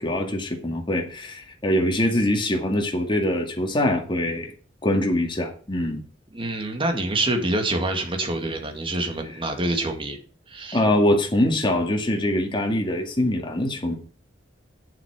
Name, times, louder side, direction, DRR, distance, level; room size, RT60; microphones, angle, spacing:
voice 1, 0.0-4.5 4.8-6.0 10.7-14.0, left 1 dB, 25° left, 2 dB, 2.2 m, -23 dB
voice 2, 6.3-10.2 10.5-10.8, right 2 dB, 30° right, 4 dB, 2.3 m, -26 dB
9.1 x 7.4 x 5.0 m, 0.40 s
head